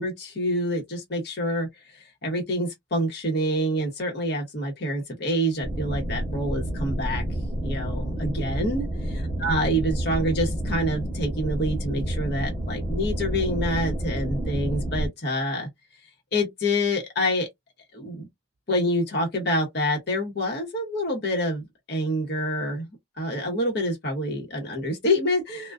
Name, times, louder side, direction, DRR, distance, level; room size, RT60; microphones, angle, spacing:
voice 1, 0.0-1.7 1.9-7.2 7.6-8.9 9.4-15.7 16.3-17.5 17.9-18.3 18.7-21.6 21.9-22.9 23.2-25.7, equal, 55° left, 1.0 m, -27 dB
sound 1, 5.6-15.1, right 1 dB, 15° right, 1.0 m, -29 dB
2.3 x 2.3 x 2.4 m
head